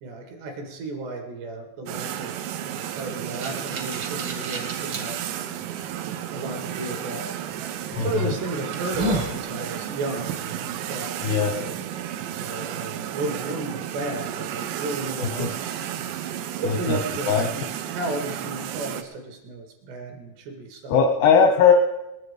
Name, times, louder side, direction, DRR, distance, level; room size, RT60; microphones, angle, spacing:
voice 1, 0.0-5.2 6.3-7.3 7.8-11.1 11.5-15.9 16.3-21.0, right 2 dB, 65° right, 4 dB, 3.2 m, -34 dB
sound 1, 1.9-19.0, right 10 dB, 85° right, 2.5 m, -32 dB
sound 2, 3.0-5.0 5.7-5.8 7.5-7.7 8.3-8.4 8.7-9.4, right 1 dB, 50° right, 1.6 m, -30 dB
voice 2, 8.0-8.3 11.2-11.5 15.3-15.5 16.6-17.0 17.3-17.5 20.9-21.7, left 6 dB, 80° left, 3 dB, 2.3 m, -19 dB
19.5 x 9.4 x 4.9 m, 0.99 s
omnidirectional pair, 5.9 m